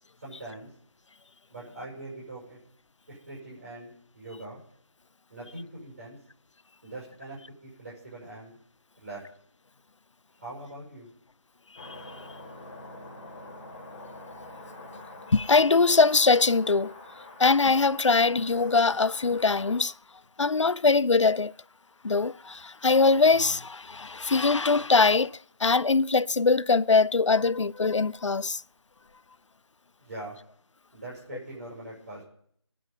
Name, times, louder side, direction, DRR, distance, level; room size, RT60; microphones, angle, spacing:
voice 1, 0.2-0.7 1.5-2.6 3.1-4.6 5.3-6.2 6.8-8.6 9.0-9.2 10.4-11.1 30.0-30.4 30.9-32.3, right 2 dB, 35° right, 6.4 m, -42 dB
sound 1, 11.8-19.8, left 2 dB, 15° left, 1.9 m, -46 dB
voice 2, 15.3-16.9 17.4-19.9 20.4-21.5 22.0-28.6, left 4 dB, 85° left, 0.5 m, -22 dB
21.0 x 10.0 x 5.5 m
figure-of-eight pair, 170°, 15 cm